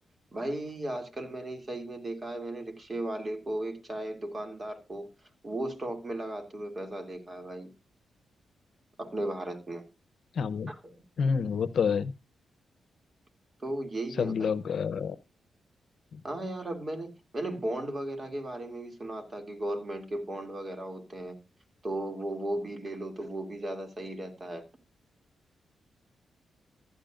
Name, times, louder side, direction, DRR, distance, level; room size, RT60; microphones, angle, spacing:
voice 1, 0.3-5.1 5.4-7.7 9.0-9.8 10.7-11.0 13.6-14.5 16.2-21.4 21.8-24.6, right 1 dB, 35° right, 2.8 m, -36 dB
voice 2, 10.4-10.7 11.2-12.1 14.2-15.2, left 6 dB, 70° left, 0.8 m, -28 dB
15.0 x 11.0 x 2.6 m
cardioid pair, 70°, 0 cm